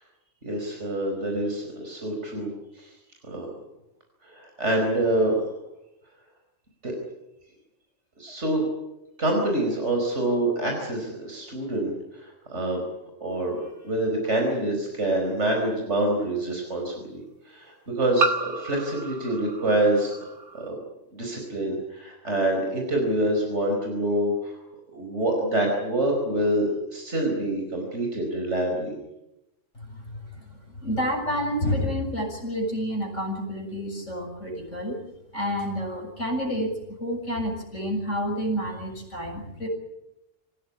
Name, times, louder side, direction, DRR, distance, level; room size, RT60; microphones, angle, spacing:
voice 1, 0.5-2.5 2.8-2.9 3.3-3.5 4.2-5.4 6.8-7.0 8.2-8.6 9.2-12.8 13.2-13.6 13.8-17.2 17.5-20.1 20.5-20.8 21.1-24.6 24.9-28.9, right 1 dB, 65° right, 1 dB, 5.3 m, -26 dB
sound 1, 14.2-14.3 16.0-16.1 18.2-20.7, right 3 dB, 85° right, 2.3 m, -31 dB
voice 2, 30.4-35.0 35.3-36.7 37.0-39.7, equal, 80° left, 1 dB, 6.6 m, -29 dB
26.5 x 15.5 x 9.9 m, 0.89 s
omnidirectional pair, 1.3 m